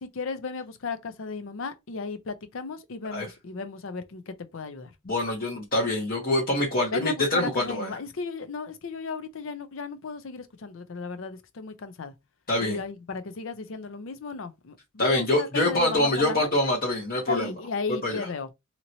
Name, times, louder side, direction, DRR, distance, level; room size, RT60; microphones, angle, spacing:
voice 1, 0.0-4.9 6.9-12.1 12.6-16.5 17.3-18.5, left 4 dB, 75° left, 0.5 m, -35 dB
voice 2, 5.0-8.0 12.5-12.8 15.0-17.5 18.0-18.3, left 1 dB, 45° left, 0.9 m, -25 dB
2.9 x 2.9 x 2.7 m
head